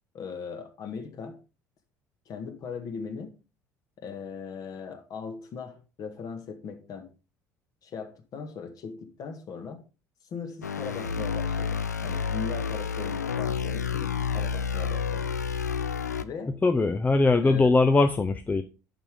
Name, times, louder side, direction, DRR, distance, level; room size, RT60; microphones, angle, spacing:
voice 1, 0.1-1.4 2.2-3.3 4.0-7.1 7.8-9.8 10.3-15.3 16.2-16.6 17.4-17.7, left 5 dB, 45° left, 1.7 m, -39 dB
sound 1, 10.6-16.2, left 6 dB, 85° left, 0.4 m, -30 dB
voice 2, 16.6-18.6, left 3 dB, 20° left, 0.7 m, -21 dB
10.5 x 5.9 x 3.7 m
figure-of-eight pair, 60°, 9 cm